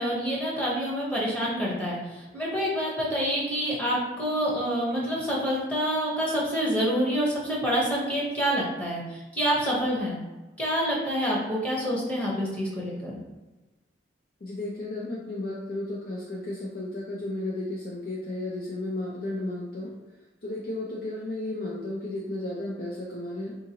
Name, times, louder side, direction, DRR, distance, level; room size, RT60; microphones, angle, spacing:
voice 1, 0.0-2.0 2.3-10.2 10.6-13.1, equal, 10° left, -5 dB, 0.8 m, -27 dB
voice 2, 14.4-19.9 20.4-23.6, left 2 dB, 55° left, -4 dB, 0.5 m, -33 dB
3.7 x 2.6 x 2.8 m, 1.1 s
head